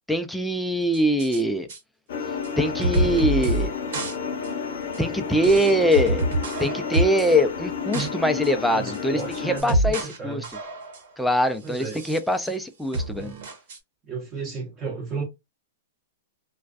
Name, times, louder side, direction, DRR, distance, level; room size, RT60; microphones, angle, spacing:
voice 1, 0.1-1.7 2.6-3.7 5.0-6.3 6.6-10.4 11.2-13.3, equal, ahead, 0.3 m, -23 dB
sound 1, 0.9-1.4 1.7-1.8 2.4-2.5 2.8-3.7 3.9-4.2 4.4-4.5 4.9-5.0 5.4-7.4 7.7-8.1 8.4-8.5 8.9-10.2 10.4-11.1 11.7-12.6 12.9-13.8, right 1 dB, 65° right, 1.1 m, -27 dB
sound 2, 2.1-9.6, left 5 dB, 65° left, 0.7 m, -31 dB
voice 2, 8.7-10.5 11.6-12.0 14.1-15.2, right 4 dB, 25° right, 0.8 m, -33 dB
2.4 x 2.1 x 2.4 m
hypercardioid pair, 145°, 0 cm